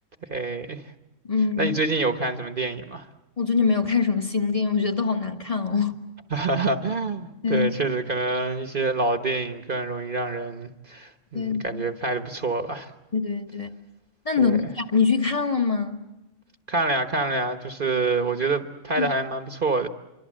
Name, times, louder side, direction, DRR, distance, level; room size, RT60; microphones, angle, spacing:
voice 1, 0.3-0.8 1.6-3.1 6.3-12.9 14.4-14.6 16.7-19.9, right 3 dB, 45° right, 1.3 m, -26 dB
voice 2, 1.2-1.8 3.4-6.0 7.4-7.7 11.3-11.9 13.1-13.7 14.2-16.0 19.0-19.1, left 5 dB, 25° left, 1.4 m, -24 dB
27.0 x 24.5 x 7.5 m
omnidirectional pair, 1.4 m